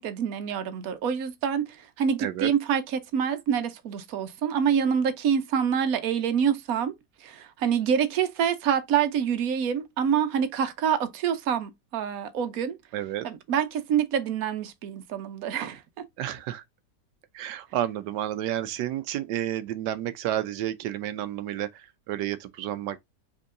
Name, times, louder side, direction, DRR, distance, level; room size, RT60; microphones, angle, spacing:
voice 1, 0.0-6.9 7.2-12.8 13.2-15.8, right 8 dB, 65° right, 1.2 m, -26 dB
voice 2, 2.2-2.5 12.9-13.3 16.2-16.6 17.3-23.0, right 12 dB, 85° right, 1.2 m, -31 dB
5.2 x 3.7 x 2.5 m
omnidirectional pair, 1.8 m